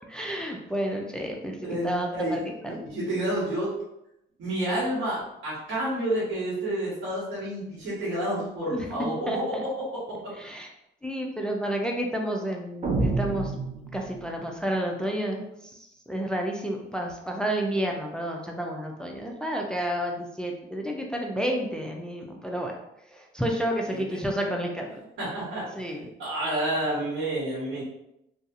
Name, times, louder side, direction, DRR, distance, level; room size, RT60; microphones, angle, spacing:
voice 1, 0.1-2.8 8.7-8.9 9.3-9.6 10.4-10.7 11.0-13.5 13.9-22.8 23.1-25.0 25.8-26.1, right 1 dB, 5° left, 1 dB, 0.4 m, -30 dB
voice 2, 1.6-2.4 2.7-3.7 4.4-9.4 23.8-24.2 25.2-25.6 26.2-27.8, right 1 dB, 75° right, -8 dB, 1.2 m, -29 dB
sound 1, 12.8-14.4, right 3 dB, 40° right, 0.6 m, -28 dB
2.6 x 2.3 x 2.5 m, 0.84 s
cardioid pair, 90°, 20 cm